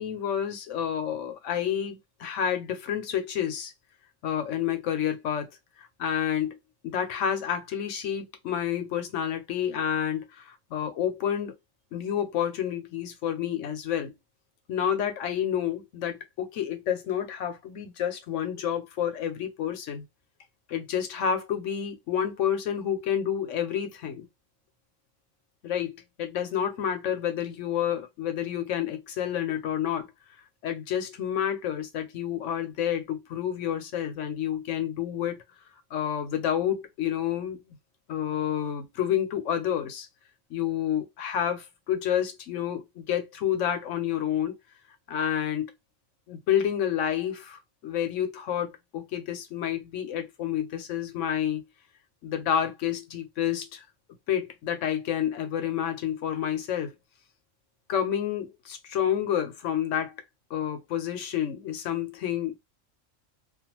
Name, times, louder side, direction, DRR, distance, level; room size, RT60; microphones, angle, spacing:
voice 1, 0.0-3.7 4.2-5.5 5.8-6.6 6.8-11.5 11.9-14.1 14.7-20.0 20.7-24.3 25.6-30.1 30.6-35.4 35.9-37.6 38.1-40.1 40.5-44.5 45.1-45.7 46.3-51.6 52.2-53.8 54.3-56.9 57.9-60.2 60.5-62.5, left 9 dB, 85° left, 1.0 m, -29 dB
2.5 x 2.2 x 2.9 m
omnidirectional pair, 1.2 m